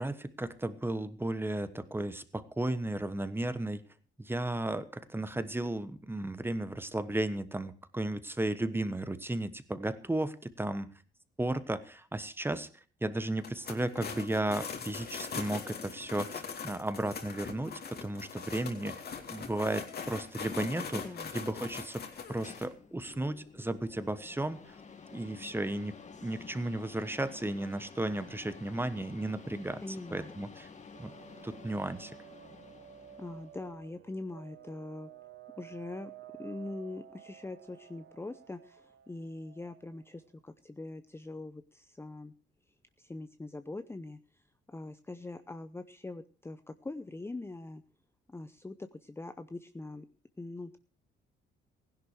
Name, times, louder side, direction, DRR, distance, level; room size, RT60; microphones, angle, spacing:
voice 1, 0.0-3.8 4.2-10.9 11.4-12.7 13.0-21.0 21.3-24.7 25.1-29.8 30.1-30.7 31.0-31.1 31.4-32.2, right 1 dB, 10° right, 13 dB, 1.2 m, -34 dB
sound 1, 13.4-22.6, left 6 dB, 50° left, 2.5 m, -41 dB
voice 2, 20.9-21.3 29.8-30.3 33.2-35.1 35.6-36.1 36.4-42.3 43.0-44.4 44.7-47.8 48.3-50.1 50.4-50.8, left 2 dB, 10° left, 10 dB, 0.7 m, -43 dB
sound 2, 22.0-33.7, left 5 dB, 35° left, 1.8 m, -51 dB
sound 3, 30.9-40.2, right 11 dB, 65° right, 1.2 m, -53 dB
16.0 x 11.0 x 4.9 m, 0.38 s
cardioid pair, 90°, 20 cm